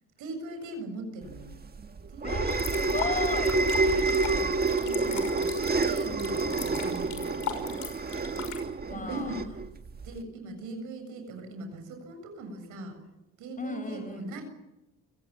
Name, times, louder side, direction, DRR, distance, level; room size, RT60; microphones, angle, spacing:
voice 1, 0.2-1.5 2.1-3.0 4.3-5.5 5.8-7.8 8.9-9.4 10.0-13.0 13.4-14.4, right 2 dB, 90° right, 6 dB, 7.3 m, -40 dB
sound 1, 1.4-10.2, right 3 dB, 30° right, 1.6 m, -28 dB
voice 2, 2.2-4.3 8.9-9.4 13.6-14.3, left 3 dB, 25° left, 10 dB, 4.4 m, -36 dB
sound 2, 2.5-8.6, left 9 dB, 75° left, 6.0 m, -39 dB
29.5 x 17.0 x 9.1 m, 0.96 s
cardioid pair, 90°, 30 cm